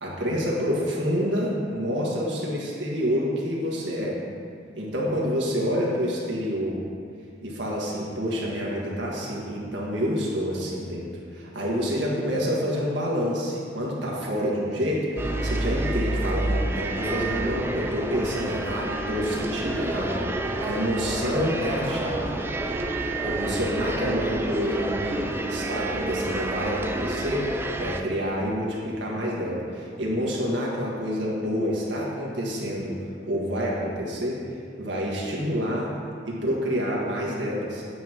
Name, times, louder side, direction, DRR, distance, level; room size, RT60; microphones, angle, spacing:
voice 1, 0.0-4.2 4.8-6.8 7.4-22.4 23.2-32.9 33.3-35.9 36.3-37.8, equal, 85° right, -4 dB, 1.7 m, -28 dB
sound 1, 15.2-28.0, right 1 dB, 15° right, 0.4 m, -29 dB
8.7 x 7.4 x 3.0 m, 2.3 s
head